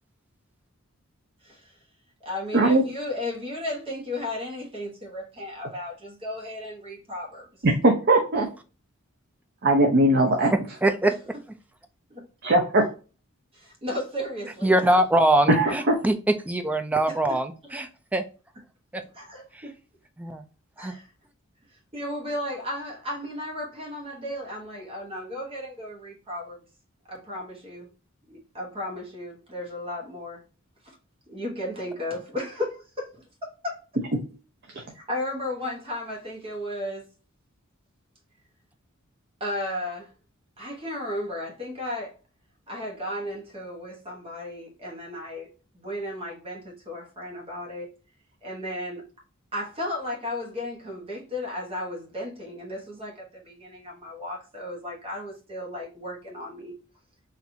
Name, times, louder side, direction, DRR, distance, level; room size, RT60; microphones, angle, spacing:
voice 1, 2.2-7.5 12.1-12.2 13.5-14.9 17.1-17.4 19.1-19.7 20.8-21.1 21.9-26.6 27.1-27.9 28.3-30.4 30.8-30.9 31.3-33.8 34.7-37.1 39.4-40.1 40.6-42.1 42.7-47.9 48.4-49.1 49.5-56.8, left 1 dB, 25° right, 1.0 m, -34 dB
voice 2, 7.6-8.5 9.6-10.5 12.4-12.8 15.5-16.0, right 1 dB, 50° right, 0.6 m, -19 dB
voice 3, 10.5-11.3 14.6-18.2 18.9-19.0 19.5-19.6 20.2-20.4 20.8-20.9, right 1 dB, 5° right, 0.3 m, -23 dB
4.2 x 2.5 x 2.7 m
head